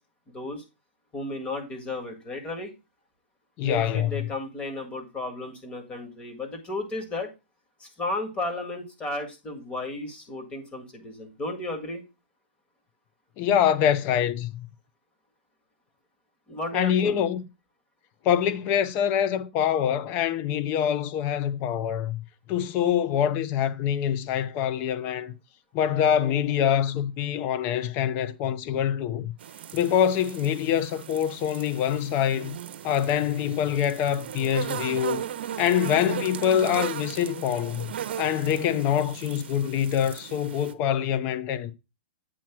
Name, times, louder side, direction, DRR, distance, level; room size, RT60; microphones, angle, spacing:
voice 1, 0.3-0.6 1.1-2.7 3.6-7.3 7.8-12.1 16.5-17.2, left 2 dB, 20° left, 1.9 m, -34 dB
voice 2, 3.6-4.3 13.4-14.7 16.7-17.4 18.2-22.2 22.5-25.3 25.7-29.3 29.7-32.6 32.8-35.2 35.6-37.9 38.2-41.7, left 9 dB, 35° left, 0.6 m, -25 dB
sound 1, 29.4-40.7, right 10 dB, 70° right, 0.7 m, -37 dB
8.6 x 3.0 x 6.0 m
hypercardioid pair, 135°, 6 cm